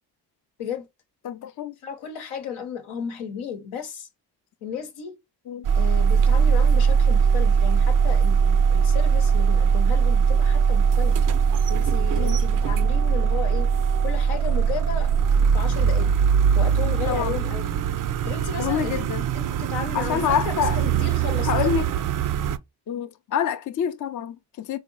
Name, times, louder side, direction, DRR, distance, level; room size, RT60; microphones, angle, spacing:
voice 1, 1.2-1.8 5.5-5.7 12.2-12.4 17.1-17.4 18.6-19.2 19.9-20.8 21.4-21.9 22.9-24.8, left 9 dB, 40° left, 0.5 m, -27 dB
voice 2, 1.8-4.1 4.6-5.2 5.8-11.2 11.7-13.7 14.0-15.1 15.5-16.1 16.5-17.7 18.2-19.0 19.3-21.7, left 7 dB, 80° left, 0.9 m, -34 dB
sound 1, 5.6-22.6, right 6 dB, 45° right, 0.4 m, -21 dB
3.9 x 2.0 x 3.7 m
supercardioid pair, 45°, 48 cm